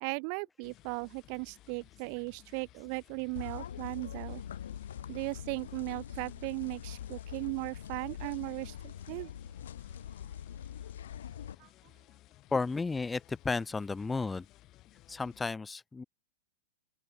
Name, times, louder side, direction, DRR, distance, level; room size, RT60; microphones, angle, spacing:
voice 1, 0.0-4.4 5.1-9.3 11.6-11.7, right 40 dB or more, 40° right, 0.9 m, -37 dB
sound 1, 0.6-15.4, left 16 dB, 30° left, 3.5 m, -59 dB
sound 2, 3.4-11.5, left 9 dB, 90° left, 0.5 m, -43 dB
voice 2, 12.5-14.4 15.1-16.0, left 4 dB, 10° left, 0.5 m, -33 dB
open air
supercardioid pair, 160°, 0 cm